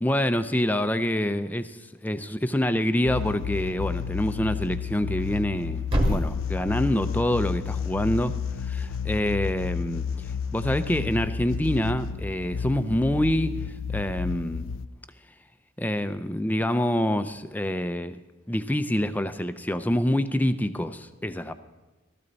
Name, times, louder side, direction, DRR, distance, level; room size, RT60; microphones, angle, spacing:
voice 1, 0.0-14.7 15.8-18.2 18.5-21.5, left 1 dB, 10° left, 10 dB, 0.5 m, -26 dB
sound 1, 3.1-14.9, left 6 dB, 75° left, 0.4 m, -31 dB
Thump thud, 5.0-9.1, equal, 25° right, 2.1 m, -32 dB
15.5 x 13.5 x 4.1 m, 1.2 s
head